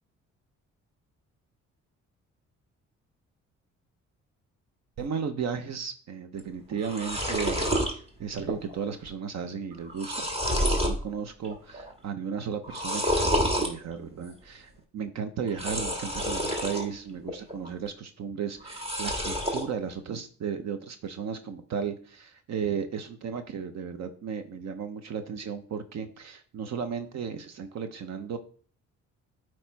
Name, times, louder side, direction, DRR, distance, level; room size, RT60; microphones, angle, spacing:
voice 1, 5.0-10.3 10.7-28.4, right 7 dB, 60° right, 9 dB, 0.8 m, -35 dB
sound 1, 6.4-6.5 6.7-7.9 8.4-8.8 9.0-9.1 9.7-11.0 11.4-11.9 12.6-13.7 15.5-16.9 17.3-17.9 18.6-19.7, equal, 20° right, 1.6 m, -28 dB
8.5 x 3.2 x 4.6 m, 0.43 s
cardioid pair, 90°, 30 cm